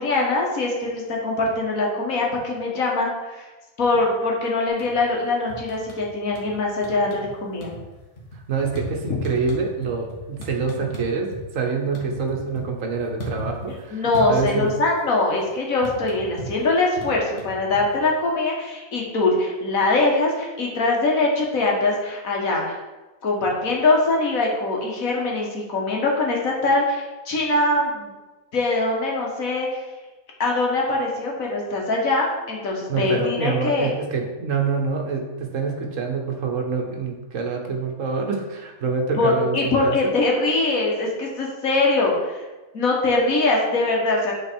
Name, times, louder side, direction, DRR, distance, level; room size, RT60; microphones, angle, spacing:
voice 1, 0.0-3.5 3.8-7.7 13.9-22.8 23.2-28.1 28.5-29.8 30.4-33.9 39.2-42.4 42.7-44.3, left 2 dB, 75° left, -1 dB, 1.8 m, -22 dB
sound 1, 4.7-5.2 5.5-6.5 6.8-7.3 7.6-11.4 11.7-13.8 14.1-15.0 15.3-18.1, right 1 dB, 55° left, 1.8 m, -36 dB
voice 2, 8.5-11.3 11.5-14.7 32.9-40.0, right 4 dB, 70° right, 2 dB, 1.4 m, -26 dB
8.6 x 4.0 x 4.5 m, 1.2 s
omnidirectional pair, 1.4 m